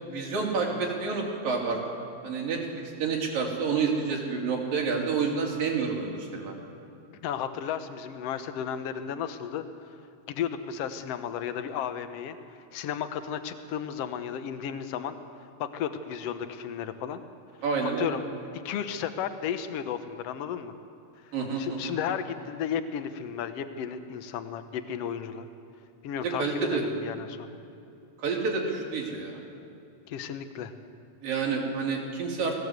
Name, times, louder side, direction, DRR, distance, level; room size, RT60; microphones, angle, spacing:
voice 1, 0.1-1.8 2.2-2.6 3.0-6.5 17.6-18.2 21.3-21.9 26.4-26.8 28.2-29.4 31.2-32.5, right 5 dB, 80° right, -1 dB, 4.7 m, -29 dB
voice 2, 7.2-9.6 10.3-12.4 12.7-15.1 15.6-17.2 17.8-18.2 18.5-20.7 21.6-25.5 26.0-27.5 30.1-30.7, left 8 dB, 70° left, 10 dB, 1.5 m, -33 dB
19.5 x 17.0 x 8.1 m, 2.8 s
omnidirectional pair, 3.9 m